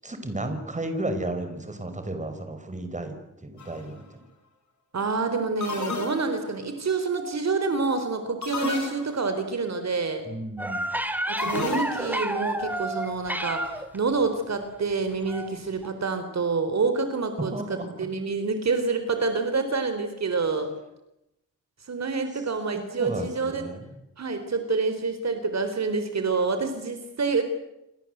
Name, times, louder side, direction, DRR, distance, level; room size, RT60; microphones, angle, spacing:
voice 1, 0.0-3.2 3.4-4.2 10.3-10.8 17.5-17.9 22.8-23.8, right 1 dB, 25° right, 7 dB, 5.4 m, -33 dB
sound 1, 3.6-3.9 5.6-6.6 8.4-9.4 11.4-12.3, left 4 dB, 65° left, 7.3 m, -33 dB
voice 2, 4.9-10.2 11.3-20.7 21.9-23.7 24.2-27.4, right 4 dB, 55° right, 8 dB, 4.0 m, -27 dB
sound 2, 10.6-14.0 15.3-15.5 15.8-15.9, right 1 dB, 5° right, 3.0 m, -30 dB
29.0 x 24.5 x 8.2 m, 0.89 s
wide cardioid pair, 105°, 32 cm